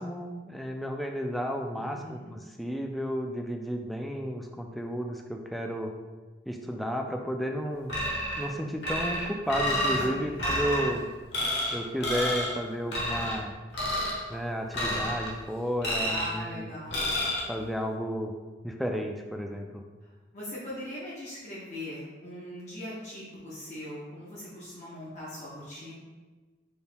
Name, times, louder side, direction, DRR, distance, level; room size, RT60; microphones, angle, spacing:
voice 1, 0.0-5.9 6.5-8.0 8.4-11.1 11.7-13.5 14.3-16.7 17.5-18.3 18.6-19.8, equal, ahead, 2 dB, 0.3 m, -32 dB
voice 2, 1.8-2.3 10.1-10.5 16.1-17.1 20.3-25.9, left 1 dB, 35° left, -9 dB, 1.0 m, -40 dB
sound 1, 7.9-8.5 8.8-10.0 10.4-10.9 11.3-11.7 12.0-12.5 12.9-13.4 13.7-14.2 14.7-15.3 15.8-16.4 16.9-17.4, left 1 dB, 70° left, 1.2 m, -29 dB
5.2 x 4.3 x 2.2 m, 1.3 s
head